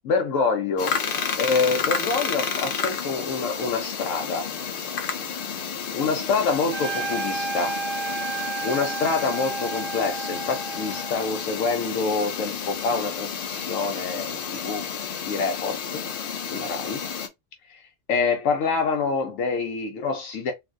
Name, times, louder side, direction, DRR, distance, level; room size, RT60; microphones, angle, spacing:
voice 1, 0.0-1.0 1.4-4.5 5.6-7.8 8.6-14.8 15.2-15.8 16.5-17.0 17.7-17.8 18.1-20.5, left 4 dB, 75° left, 1.0 m, -26 dB
sound 1, 0.8-17.3, left 6 dB, 55° left, 0.6 m, -31 dB
Trumpet, 6.7-11.4, right 4 dB, 45° right, 1.0 m, -32 dB
3.3 x 2.6 x 2.4 m
omnidirectional pair, 1.4 m